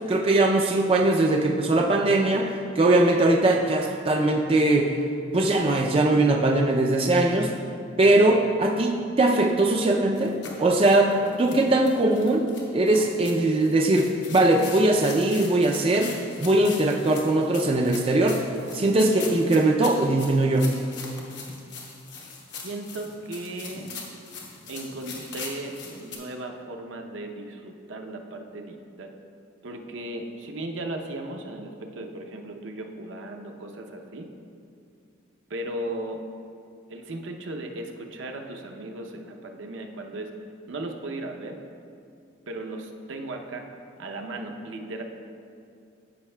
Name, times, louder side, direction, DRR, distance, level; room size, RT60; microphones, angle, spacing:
voice 1, 0.1-5.0 5.3-7.5 8.0-10.3 10.6-11.1 11.4-12.4 12.7-18.4 18.7-20.8, right 2 dB, 30° right, 1 dB, 0.3 m, -21 dB
sound 1, 10.2-26.2, left 4 dB, 65° left, 1.0 m, -41 dB
voice 2, 22.6-23.9 24.7-29.1 29.6-34.3 35.5-36.2 36.9-40.3 40.7-41.6 42.5-43.7 44.0-45.0, right 1 dB, 75° right, 4 dB, 0.6 m, -36 dB
12.5 x 5.6 x 2.2 m, 2.5 s
head